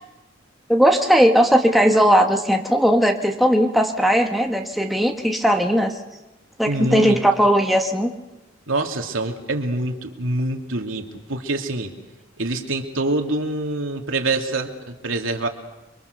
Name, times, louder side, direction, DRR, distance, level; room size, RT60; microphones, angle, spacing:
voice 1, 0.7-5.9 6.6-8.1, equal, ahead, 2 dB, 1.5 m, -18 dB
voice 2, 6.7-7.2 8.7-11.9 12.4-15.5, right 2 dB, 85° right, 3 dB, 2.8 m, -25 dB
29.5 x 23.0 x 6.8 m, 1.1 s
head